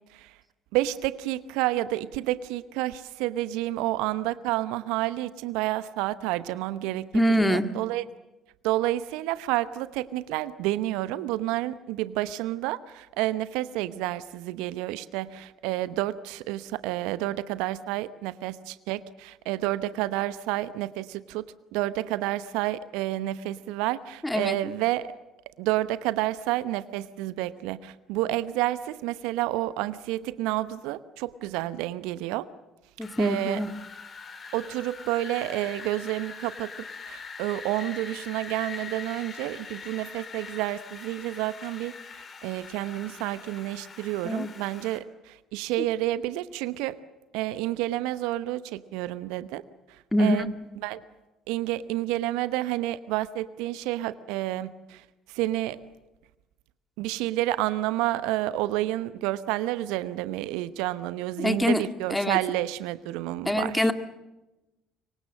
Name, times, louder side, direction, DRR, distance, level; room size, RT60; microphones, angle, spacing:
voice 1, 0.7-8.0 8.6-21.5 21.7-25.1 25.6-32.5 33.2-33.6 34.5-36.7 37.1-41.9 42.4-47.0 47.3-49.6 49.9-50.5 50.8-51.0 51.5-55.9 57.0-63.9, right 15 dB, 70° right, 15 dB, 0.9 m, -30 dB
voice 2, 7.1-7.7 24.2-24.6 33.0-33.7 44.2-44.5 50.1-50.5 61.4-61.8 62.1-62.4 63.5-63.9, left 1 dB, 10° left, 9 dB, 1.8 m, -24 dB
Wind, 33.0-45.0, left 5 dB, 40° left, 3.2 m, -43 dB
25.5 x 24.0 x 7.5 m, 1.0 s
figure-of-eight pair, 55°, 0 cm